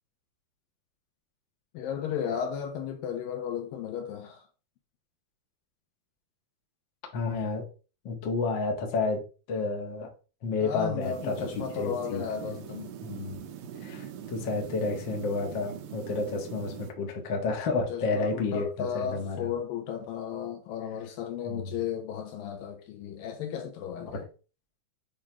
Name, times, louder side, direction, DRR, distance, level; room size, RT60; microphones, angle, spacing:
voice 1, 1.7-4.4 10.6-12.9 17.9-24.2, left 8 dB, 75° left, 2.2 m, -34 dB
voice 2, 7.1-7.7 8.0-9.2 9.5-10.1 10.4-11.4 11.7-12.5 13.0-13.4 13.8-19.5 21.5-21.7 24.1-24.2, left 3 dB, 55° left, 1.2 m, -31 dB
sound 1, 11.0-16.9, right 9 dB, 90° right, 1.7 m, -42 dB
8.4 x 4.8 x 3.0 m
omnidirectional pair, 4.5 m